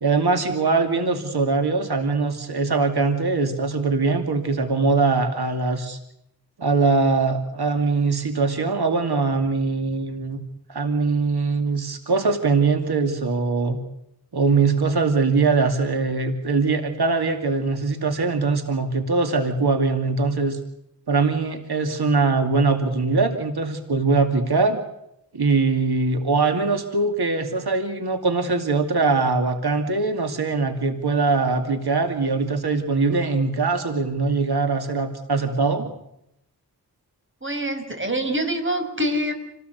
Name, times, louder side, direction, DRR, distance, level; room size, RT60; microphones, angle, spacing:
voice 1, 0.0-6.0 6.6-10.4 10.7-13.8 14.3-20.6 21.1-24.8 25.3-35.9, right 4 dB, 85° right, 6 dB, 2.6 m, -22 dB
voice 2, 37.4-39.3, right 1 dB, 30° right, 5 dB, 5.4 m, -25 dB
28.5 x 18.5 x 8.2 m, 0.81 s
wide cardioid pair, 85°, 38 cm